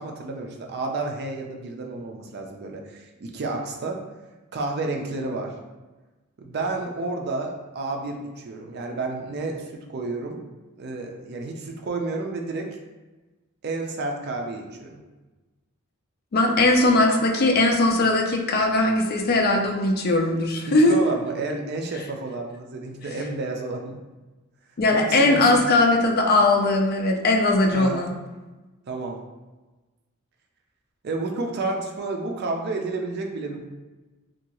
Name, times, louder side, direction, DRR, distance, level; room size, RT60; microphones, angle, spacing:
voice 1, 0.0-4.0 4.5-5.5 6.4-10.4 10.8-12.8 13.6-15.0 20.7-24.0 24.9-25.6 27.7-28.1 28.9-29.2 31.0-33.6, right 3 dB, 50° right, 2 dB, 0.4 m, -30 dB
voice 2, 16.3-20.9 24.8-28.1, left 2 dB, 50° left, 3 dB, 0.4 m, -20 dB
2.7 x 2.3 x 2.9 m, 1.2 s
head